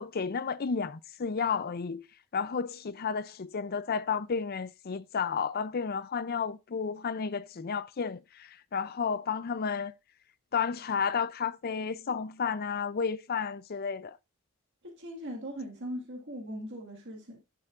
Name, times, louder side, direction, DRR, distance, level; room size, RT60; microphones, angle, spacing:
voice 1, 0.0-2.1 2.3-9.9 10.5-14.2, left 6 dB, 45° left, 0.5 m, -32 dB
voice 2, 14.8-17.4, equal, 55° right, 1.9 m, -40 dB
11.0 x 6.7 x 2.5 m
head